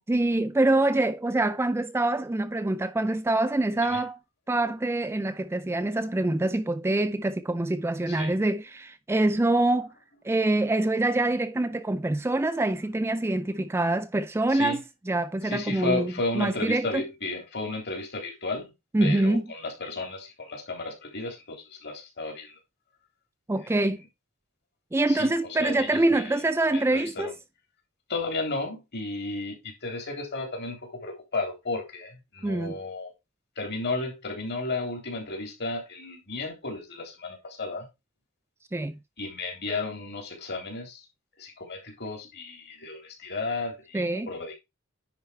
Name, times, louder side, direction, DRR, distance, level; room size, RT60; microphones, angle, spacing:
voice 1, 0.1-4.2 4.5-9.9 10.2-17.0 18.9-19.5 23.5-24.0 24.9-27.3 32.4-32.8 38.7-39.0 43.9-44.3, right 2 dB, 10° right, 0.4 m, -25 dB
voice 2, 15.4-18.7 19.0-22.6 25.1-25.3 25.6-26.4 26.7-27.3 28.1-33.1 33.6-37.9 39.2-41.1 41.4-44.5, left 3 dB, 50° left, 3.5 m, -33 dB
10.0 x 4.5 x 4.5 m
head